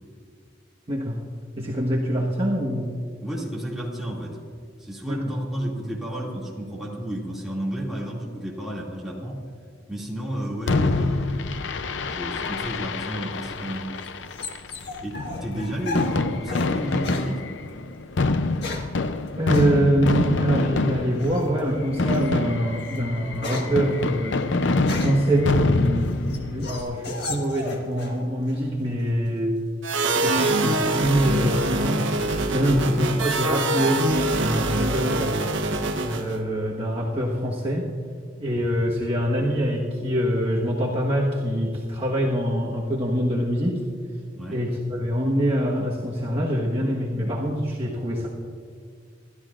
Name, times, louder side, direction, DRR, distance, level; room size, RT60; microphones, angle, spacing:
voice 1, 0.9-1.2 1.6-3.0 5.1-5.3 19.4-24.4 24.9-29.6 30.1-35.4 36.0-37.9 38.4-43.7 44.5-48.3, equal, 30° right, -4 dB, 1.4 m, -24 dB
voice 2, 3.2-4.4 4.8-9.4 9.9-11.5 12.1-13.9 15.0-17.5 32.7-32.9 44.3-44.6, equal, ahead, -5 dB, 2.4 m, -32 dB
Fireworks, 10.7-26.8, left 3 dB, 75° left, 0.6 m, -26 dB
sound 1, 13.4-16.7 17.0-17.3 18.2-19.0 19.5-19.7 21.2-21.6 22.1-22.3 22.7-25.3 25.9-28.2 28.5-29.1, left 2 dB, 60° left, 1.7 m, -35 dB
sound 2, 29.8-36.4, right 2 dB, 90° right, 1.2 m, -24 dB
27.5 x 13.0 x 2.5 m, 2.1 s
head